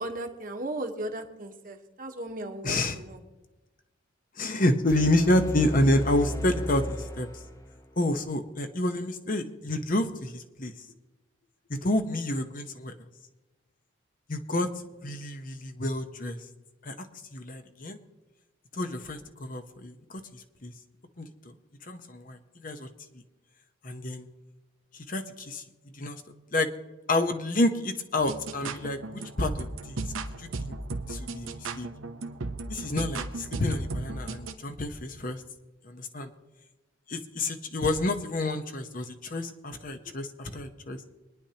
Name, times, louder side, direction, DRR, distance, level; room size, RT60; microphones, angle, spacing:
voice 1, 0.0-3.2, right 1 dB, 45° right, 4 dB, 1.2 m, -36 dB
voice 2, 2.6-3.0 4.4-7.4 8.0-10.7 11.7-12.9 14.3-14.7 15.0-16.4 16.8-17.1 17.3-18.0 18.7-20.7 21.2-21.3 21.8-22.9 23.1-23.2 23.8-24.3 24.9-25.6 25.9-26.2 26.5-26.7 27.1-30.0 30.4-30.8 31.1-31.9 32.7-35.4 35.8-36.3 37.1-41.0, left 1 dB, 40° left, 7 dB, 0.9 m, -29 dB
sound 1, 4.9-7.9, equal, 15° left, 0.7 m, -35 dB
sound 2, 28.2-34.5, right 3 dB, 85° right, 0.9 m, -36 dB
24.0 x 10.0 x 2.9 m, 1.1 s
head